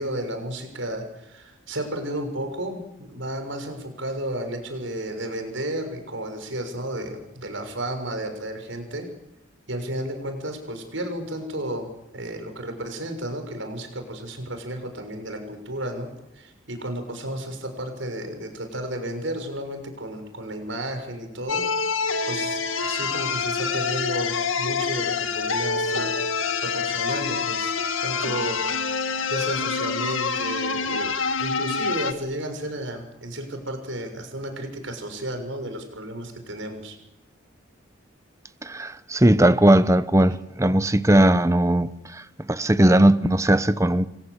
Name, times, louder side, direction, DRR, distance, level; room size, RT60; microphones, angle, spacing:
voice 1, 0.0-9.1 9.7-16.1 16.3-21.6 22.3-26.2 26.4-27.7 28.0-28.6 28.9-31.1 31.4-37.0, right 1 dB, 70° right, 6.7 m, -33 dB
sound 1, 21.5-32.1, left 5 dB, 80° left, 2.1 m, -26 dB
voice 2, 38.6-44.1, right 1 dB, 15° right, 0.9 m, -19 dB
29.5 x 23.5 x 8.4 m
head